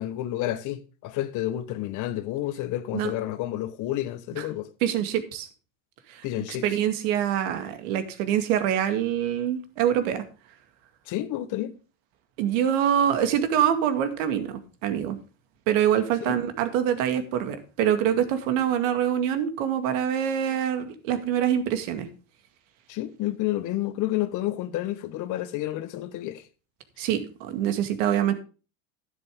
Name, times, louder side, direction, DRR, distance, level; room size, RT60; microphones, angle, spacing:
voice 1, 0.0-4.7 6.2-6.7 11.1-11.7 16.2-16.4 22.9-26.4, left 14 dB, 50° left, 1.3 m, -30 dB
voice 2, 4.8-5.5 6.1-10.2 12.4-15.2 15.7-22.1 27.0-28.3, right 9 dB, 75° right, 2.2 m, -25 dB
11.5 x 10.5 x 3.7 m
supercardioid pair, 130°, 38 cm